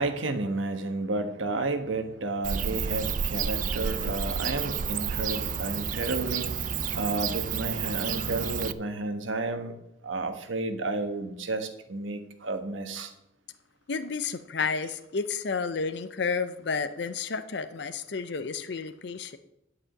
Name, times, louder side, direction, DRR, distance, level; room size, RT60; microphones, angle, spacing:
voice 1, 0.0-6.6 6.9-9.8 10.0-13.1 14.8-14.9, right 2 dB, 80° right, 7 dB, 1.3 m, -31 dB
Bird / Cricket, 2.4-8.7, right 7 dB, 45° right, 0.4 m, -30 dB
voice 2, 13.9-19.4, left 5 dB, 60° left, 11 dB, 0.6 m, -31 dB
11.5 x 4.9 x 7.7 m, 0.86 s
head